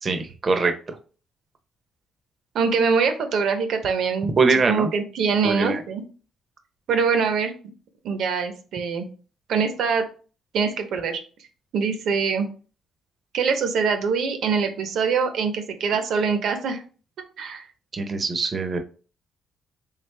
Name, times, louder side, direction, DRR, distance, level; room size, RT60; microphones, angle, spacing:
voice 1, 0.0-0.7 4.4-4.9 5.4-5.8 17.9-18.8, right 4 dB, 40° right, 7 dB, 0.7 m, -22 dB
voice 2, 2.5-4.3 4.7-6.0 6.9-7.5 8.0-9.1 9.5-10.0 10.5-11.2 11.7-12.5 13.3-16.8 17.4-17.6, right 5 dB, 75° right, 7 dB, 0.8 m, -23 dB
3.5 x 3.3 x 3.3 m, 0.38 s
cardioid pair, 90°, 0 cm